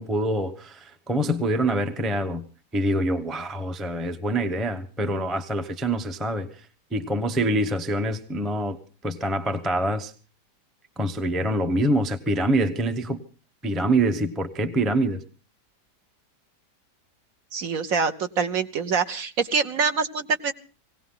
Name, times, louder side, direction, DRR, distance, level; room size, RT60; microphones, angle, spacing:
voice 1, 0.0-2.4 2.7-6.6 6.9-8.8 9.0-10.1 11.0-13.2 13.6-15.2, right 1 dB, ahead, 0.6 m, -25 dB
voice 2, 17.5-20.5, right 5 dB, 55° right, 1.3 m, -25 dB
19.5 x 17.5 x 3.8 m
omnidirectional pair, 1.8 m